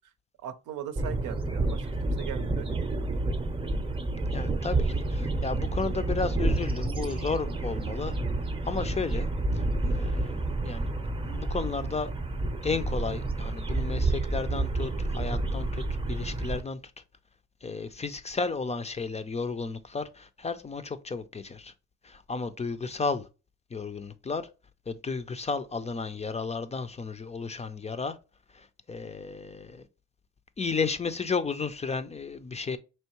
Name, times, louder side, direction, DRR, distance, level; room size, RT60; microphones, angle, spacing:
voice 1, 0.4-3.1, right 9 dB, 80° right, 0.6 m, -40 dB
sound 1, 1.0-16.6, right 2 dB, 15° right, 0.6 m, -29 dB
voice 2, 4.3-8.2 8.6-9.3 9.5-10.9 11.2-12.1 12.6-16.8 17.6-21.7 22.0-23.3 23.7-24.5 24.9-28.2 28.5-29.9 30.6-32.8, left 4 dB, 20° left, 0.4 m, -33 dB
4.5 x 3.1 x 2.9 m
cardioid pair, 90°, 30 cm